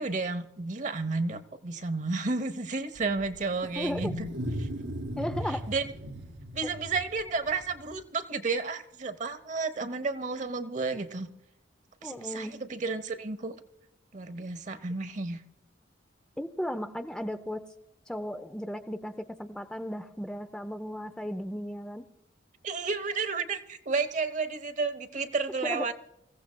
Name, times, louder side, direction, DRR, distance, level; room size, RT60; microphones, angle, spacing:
voice 1, 0.0-4.3 4.6-4.7 5.7-5.9 6.5-11.3 12.0-13.6 14.1-15.4 22.6-25.9, right 4 dB, 40° right, 10 dB, 0.8 m, -32 dB
Wild animals, 3.0-8.0, equal, 85° right, 1.9 m, -37 dB
voice 2, 3.8-4.1 5.2-5.7 6.6-6.7 12.0-12.5 16.4-17.6 18.1-22.0 25.6-25.9, equal, 5° left, 7 dB, 0.5 m, -35 dB
26.0 x 15.5 x 2.2 m, 0.81 s
head